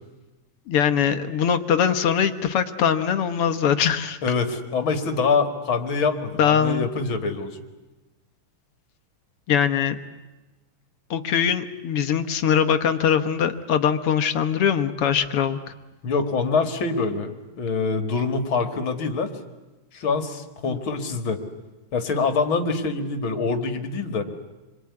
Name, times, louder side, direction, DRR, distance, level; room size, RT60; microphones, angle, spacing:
voice 1, 0.7-4.2 6.4-6.9 9.5-10.0 11.1-15.6, left 8 dB, 60° left, 8 dB, 1.7 m, -22 dB
voice 2, 4.2-7.6 16.0-19.3 19.9-21.4 21.9-24.2, left 4 dB, 45° left, 7 dB, 2.5 m, -25 dB
27.5 x 22.0 x 9.6 m, 1.1 s
omnidirectional pair, 3.4 m